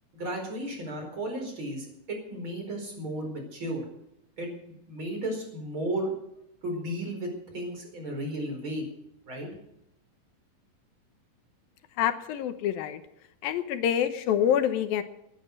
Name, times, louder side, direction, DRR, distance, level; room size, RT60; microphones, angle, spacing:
voice 1, 0.1-3.8 4.4-4.5 4.9-6.1 6.6-7.3 7.5-8.9 9.3-9.5, right 1 dB, 35° right, 2 dB, 5.4 m, -34 dB
voice 2, 12.0-13.0 13.4-15.0, left 9 dB, 85° left, 10 dB, 2.9 m, -26 dB
19.5 x 10.5 x 6.5 m, 0.79 s
omnidirectional pair, 4.1 m